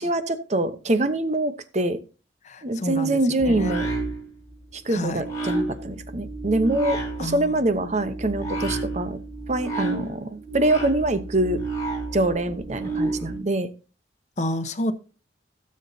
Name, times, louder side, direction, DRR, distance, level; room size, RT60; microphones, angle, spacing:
voice 1, 0.0-2.0 2.6-3.9 4.7-9.2 9.5-11.6 12.1-13.7, right 1 dB, 35° right, 0.9 m, -24 dB
voice 2, 2.5-3.2 3.5-3.7 4.9-5.3 7.2-7.6 14.4-14.9, left 1 dB, 40° left, 0.9 m, -29 dB
sound 1, 3.4-13.4, right 3 dB, 20° left, 2.5 m, -30 dB
17.0 x 7.4 x 2.7 m
head